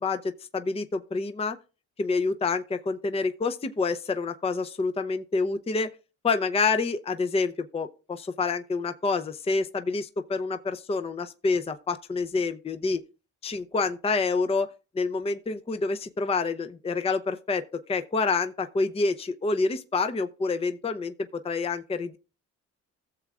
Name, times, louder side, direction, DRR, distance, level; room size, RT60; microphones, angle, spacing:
voice 1, 0.0-1.6 2.0-5.9 6.2-13.0 13.4-14.7 14.9-22.2, left 4 dB, 20° left, 0.6 m, -28 dB
15.5 x 7.2 x 2.4 m
cardioid pair, 90°, 30 cm